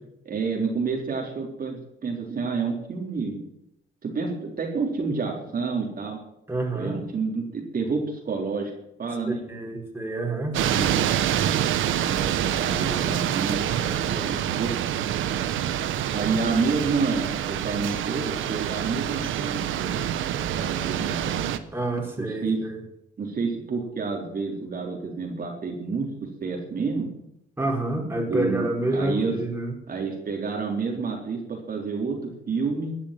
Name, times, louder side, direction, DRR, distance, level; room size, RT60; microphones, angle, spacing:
voice 1, 0.2-3.4 4.0-6.2 6.7-8.7 9.0-9.4 10.7-11.0 12.0-13.6 14.3-14.7 16.1-20.1 20.5-21.5 22.2-22.6 23.2-27.1 28.3-29.4 29.9-33.0, right 4 dB, 45° right, 0 dB, 3.9 m, -29 dB
voice 2, 6.5-7.0 9.3-10.6 13.7-14.6 21.7-22.8 27.6-29.7, right 2 dB, 10° right, 0 dB, 4.9 m, -29 dB
sound 1, 10.5-21.6, right 10 dB, 80° right, 1.2 m, -26 dB
13.0 x 10.5 x 9.1 m, 0.80 s
cardioid pair, 90°, 20 cm